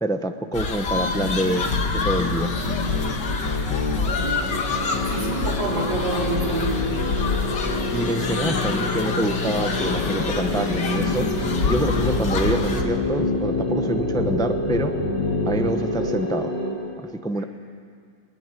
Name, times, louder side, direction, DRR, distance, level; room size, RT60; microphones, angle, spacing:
voice 1, 0.0-2.5 7.9-11.3 11.7-14.9 15.5-16.5 17.2-17.4, right 1 dB, 5° left, 7 dB, 0.4 m, -26 dB
sound 1, 0.5-12.8, left 4 dB, 65° left, 2.3 m, -27 dB
sound 2, 0.9-15.7, left 3 dB, 90° left, 3.2 m, -29 dB
sound 3, 4.0-16.7, left 1 dB, 35° left, 5.9 m, -29 dB
voice 2, 5.1-6.8, right 2 dB, 75° right, -4 dB, 4.9 m, -27 dB
21.0 x 20.5 x 9.2 m, 2.1 s
omnidirectional pair, 2.0 m